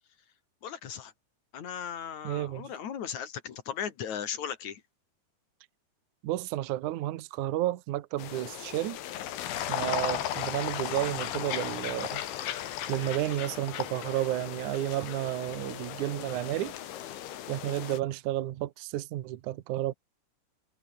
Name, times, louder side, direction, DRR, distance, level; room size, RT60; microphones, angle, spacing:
voice 1, 0.6-1.1 1.5-4.8, left 8 dB, 50° left, 2.7 m, -37 dB
voice 2, 2.2-2.7 6.2-9.0 9.7-12.2 12.9-16.7 17.5-19.9, right 14 dB, 80° right, 1.7 m, -32 dB
sound 1, 8.2-18.0, left 11 dB, 90° left, 4.5 m, -36 dB
omnidirectional pair, 5.2 m